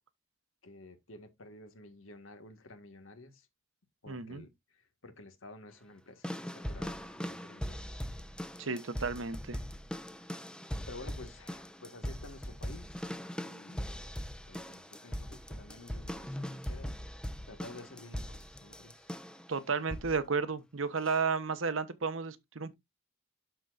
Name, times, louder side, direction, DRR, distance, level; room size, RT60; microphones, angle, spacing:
voice 1, 0.6-3.5 4.0-8.0 10.9-13.1 13.4-14.1 14.5-17.0 17.5-19.1, left 2 dB, 85° left, 1.6 m, -52 dB
voice 2, 4.1-4.4 8.6-9.6 19.5-22.7, right 5 dB, 80° right, 1.0 m, -33 dB
sound 1, 6.2-19.5 19.9-20.3 21.1-21.2, equal, 5° left, 0.6 m, -40 dB
12.0 x 4.5 x 2.5 m
head